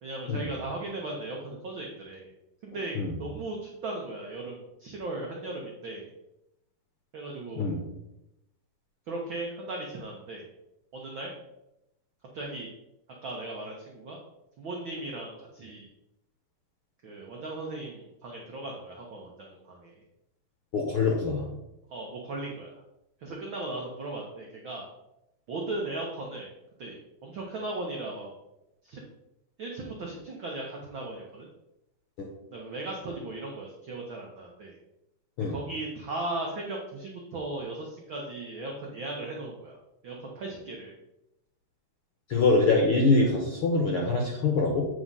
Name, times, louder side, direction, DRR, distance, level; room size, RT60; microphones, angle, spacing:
voice 1, 0.0-2.3 2.6-6.1 7.1-7.7 9.1-10.4 10.9-11.3 12.3-12.7 13.2-14.2 14.6-15.9 17.0-20.0 21.9-22.7 23.2-24.9 25.5-26.5 26.8-28.3 28.8-29.0 29.6-31.5 32.5-34.8 35.5-39.8 40.0-40.9, right 2 dB, 75° right, -1 dB, 1.1 m, -37 dB
voice 2, 20.7-21.5 32.2-32.3 35.4-35.6 42.3-44.9, left 3 dB, 65° left, 0 dB, 1.4 m, -24 dB
8.5 x 3.8 x 5.4 m, 0.88 s
omnidirectional pair, 3.7 m